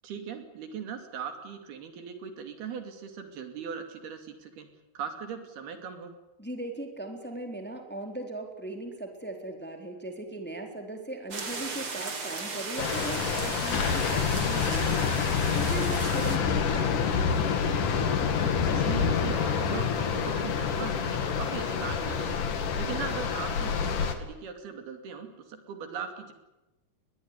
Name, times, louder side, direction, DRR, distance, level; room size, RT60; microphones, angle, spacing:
voice 1, 0.0-4.7 4.9-6.1 18.7-22.4 22.8-26.3, right 7 dB, 75° right, 7 dB, 4.6 m, -39 dB
voice 2, 6.4-17.3, right 1 dB, 5° left, 4 dB, 3.5 m, -38 dB
sound 1, 11.3-16.4, right 4 dB, 35° right, 3.7 m, -36 dB
sound 2, 12.8-24.2, left 6 dB, 60° left, 3.5 m, -27 dB
22.0 x 20.5 x 9.9 m, 1.0 s
omnidirectional pair, 4.6 m